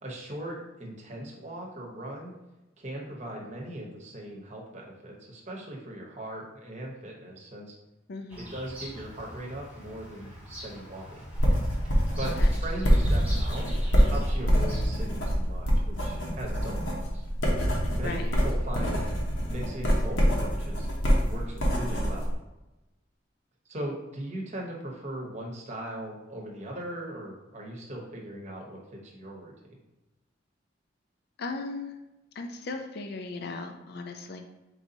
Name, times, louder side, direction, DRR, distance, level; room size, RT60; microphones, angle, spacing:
voice 1, 0.0-2.3 2.8-7.7 8.4-11.2 12.2-12.3 12.6-13.7 14.1-17.2 17.9-19.0 19.5-20.9 21.3-22.3 23.7-29.5, right 1 dB, 35° right, -1 dB, 0.9 m, -39 dB
voice 2, 8.1-8.5 12.2-12.5 18.0-18.3 31.4-31.9 32.4-34.4, left 3 dB, 55° left, 5 dB, 0.4 m, -37 dB
Bird vocalization bird call bird song, 8.3-15.1, equal, 10° right, 1.0 m, -44 dB
sound 1, 11.3-22.3, equal, 90° left, 1.0 m, -25 dB
4.6 x 2.7 x 3.9 m, 1.0 s
head